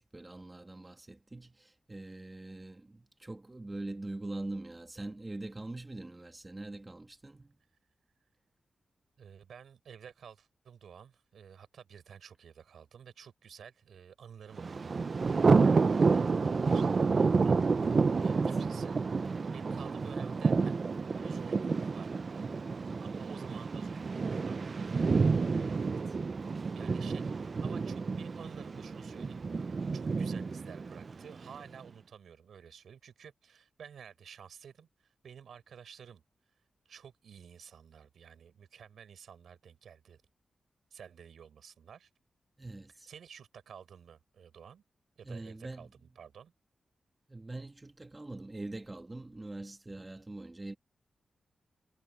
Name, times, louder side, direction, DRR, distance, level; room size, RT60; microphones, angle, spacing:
voice 1, 0.0-7.5 18.2-18.5 25.7-26.1 42.6-43.1 45.2-45.9 47.3-50.8, right 2 dB, 20° right, 1.4 m, -43 dB
voice 2, 9.2-26.1 26.7-27.3 27.6-36.2 36.8-40.2 40.9-42.1 43.1-44.8 45.2-46.5, right 7 dB, 85° right, 5.7 m, -52 dB
Thunder, 14.6-31.6, right 4 dB, 40° right, 0.5 m, -29 dB
wide cardioid pair, 130°, 0 cm